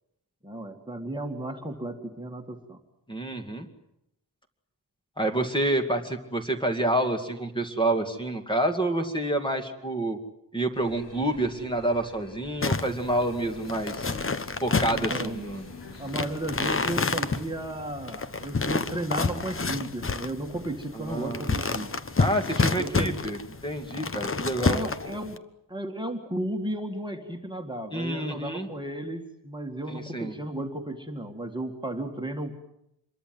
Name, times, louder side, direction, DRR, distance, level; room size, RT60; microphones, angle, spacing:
voice 1, 0.4-2.8 14.8-15.4 16.0-21.9 22.6-23.2 24.7-25.4 25.7-32.5, right 1 dB, 10° right, 2 dB, 2.1 m, -34 dB
voice 2, 3.1-3.7 5.2-10.2 10.5-14.2 14.6-15.7 20.9-21.5 22.2-24.8 27.9-28.7 29.9-30.3, right 1 dB, 10° left, 4 dB, 2.4 m, -28 dB
sound 1, 10.7-19.4, left 2 dB, 70° left, 7.1 m, -49 dB
sound 2, 12.6-25.4, left 4 dB, 30° left, 1.2 m, -29 dB
26.5 x 22.5 x 7.9 m, 0.80 s
wide cardioid pair, 160°, 44 cm